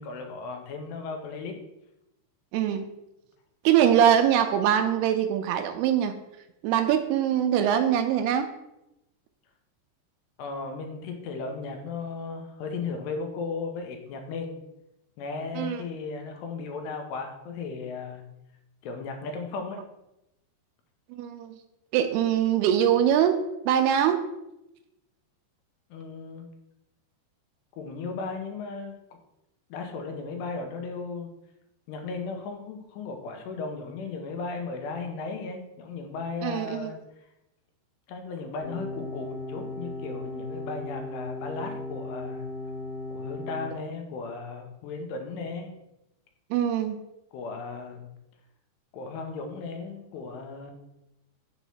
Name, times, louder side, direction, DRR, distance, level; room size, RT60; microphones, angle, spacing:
voice 1, 0.0-1.5 10.4-14.5 15.2-18.2 18.8-19.8 25.9-26.5 27.8-29.0 29.7-31.3 31.9-37.0 38.1-42.5 43.1-45.7 47.3-48.1 48.9-50.7, left 4 dB, 90° left, 4 dB, 2.9 m, -36 dB
voice 2, 2.5-2.9 3.7-6.1 6.6-8.5 15.6-15.8 21.1-21.6 21.9-24.2 36.4-36.9 46.5-47.0, right 9 dB, 85° right, 7 dB, 2.4 m, -23 dB
sound 1, 38.6-43.6, left 2 dB, 65° right, 1.2 m, -36 dB
6.8 x 3.1 x 5.6 m, 0.88 s
omnidirectional pair, 4.8 m